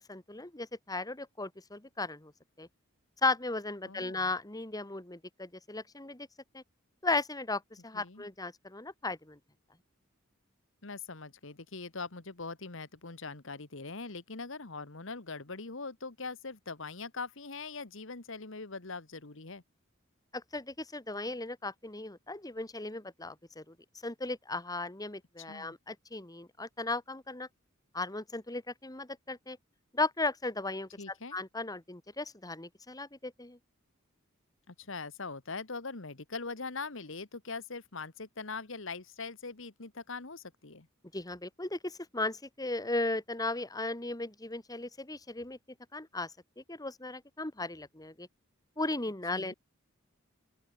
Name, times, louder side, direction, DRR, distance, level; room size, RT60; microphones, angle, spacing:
voice 1, 0.1-2.3 2.6-2.7 3.2-6.3 6.5-6.6 7.0-9.4 20.3-23.8 24.0-27.5 27.9-29.6 29.9-30.9 31.3-33.6 41.1-45.6 45.9-48.3 48.8-49.5, left 2 dB, 20° left, 1.9 m, -36 dB
voice 2, 3.9-4.3 7.9-8.2 10.8-19.6 25.5-25.7 31.0-31.4 34.7-40.9 49.3-49.5, left 4 dB, 65° left, 1.7 m, -42 dB
open air
head